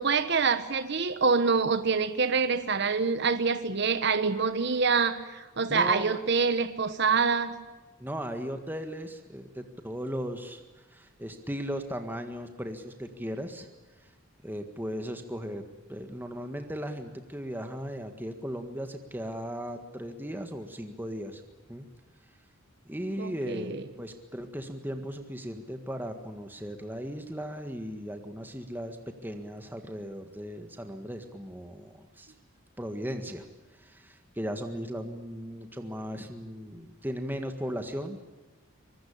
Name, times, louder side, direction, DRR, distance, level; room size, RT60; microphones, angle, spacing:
voice 1, 0.0-7.5 23.2-23.8, right 5 dB, 55° right, 11 dB, 1.1 m, -26 dB
voice 2, 5.7-6.2 8.0-10.6 10.9-13.7 14.0-14.1 14.4-15.6 15.9-21.4 21.7-21.8 22.8-29.0 29.2-32.3 32.8-33.4 33.8-38.2, equal, 10° right, 6 dB, 1.7 m, -37 dB
25.0 x 21.0 x 8.6 m, 1.2 s
head